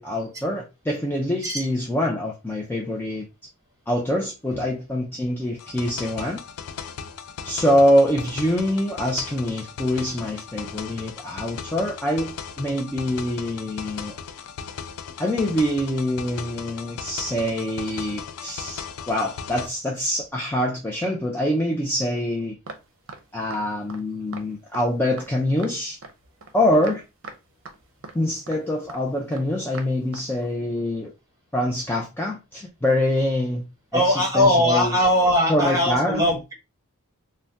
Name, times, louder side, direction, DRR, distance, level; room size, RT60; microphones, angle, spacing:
voice 1, 0.0-3.3 3.9-6.4 7.4-14.2 15.2-22.6 23.3-26.0 26.5-27.0 28.1-31.1 31.5-33.6 33.9-35.0 35.5-36.2, left 1 dB, 10° left, 0.4 m, -25 dB
sound 1, 5.6-19.7, left 6 dB, 80° left, 0.4 m, -37 dB
sound 2, 22.7-22.8 23.1-23.2 23.5-23.6 23.9-24.0 24.3-24.5 24.7-24.9 25.2-25.3 25.6-25.7 26.0-26.1 26.4-26.5 26.8-27.0 27.2-27.4 27.7-27.8 28.0-28.2 28.5-28.6 28.9-29.0 29.3-29.4 29.7-29.9 30.1-30.3, right 4 dB, 60° right, 0.6 m, -39 dB
voice 2, 33.9-36.5, left 1 dB, 15° right, 1.3 m, -20 dB
2.6 x 2.2 x 3.4 m
head